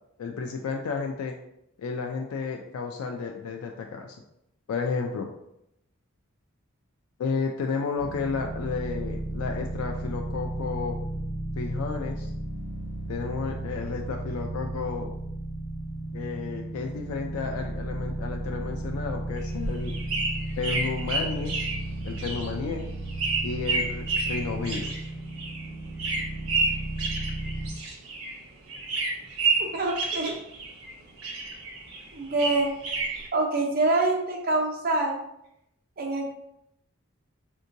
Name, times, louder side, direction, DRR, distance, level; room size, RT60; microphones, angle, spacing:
voice 1, 0.2-1.3 1.8-4.2 4.7-5.3 7.2-11.0 11.6-12.3 13.1-15.1 16.1-20.0 20.6-21.6 22.0-22.8 23.4-25.1, left 4 dB, 90° left, 3 dB, 0.3 m, -32 dB
sound 1, 8.0-27.7, right 1 dB, 70° left, 0.9 m, -34 dB
sound 2, 19.4-28.4 28.7-30.9 31.2-33.3, right 3 dB, 80° right, 0.7 m, -30 dB
voice 2, 29.6-30.4 32.1-32.7 33.3-35.2 36.0-36.3, right 2 dB, 45° right, 0 dB, 0.6 m, -25 dB
3.6 x 2.7 x 2.5 m, 0.80 s
head